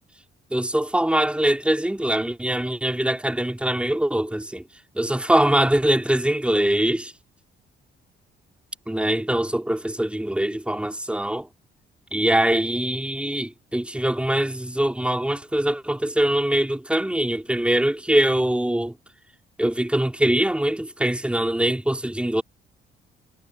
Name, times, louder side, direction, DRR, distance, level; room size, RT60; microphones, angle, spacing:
voice 1, 0.5-4.6 4.9-7.1 8.9-11.5 12.1-18.9 19.6-22.4, right 1 dB, 5° right, 4.6 m, -23 dB
cardioid pair, 90°, 20 cm